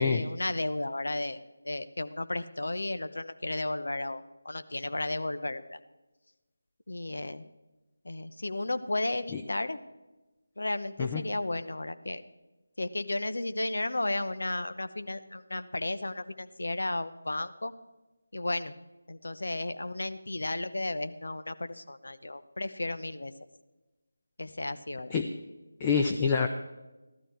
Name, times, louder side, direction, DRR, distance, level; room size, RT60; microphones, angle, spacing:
voice 1, 0.0-1.4 1.6-5.8 6.9-7.4 8.0-9.8 10.6-12.2 12.8-17.7 18.3-18.7 19.1-23.3 24.4-25.1, left 2 dB, 70° left, 11 dB, 0.8 m, -33 dB
voice 2, 25.8-26.5, left 5 dB, 20° left, 5 dB, 0.6 m, -26 dB
15.0 x 12.5 x 4.5 m, 1.1 s
figure-of-eight pair, 160°, 0 cm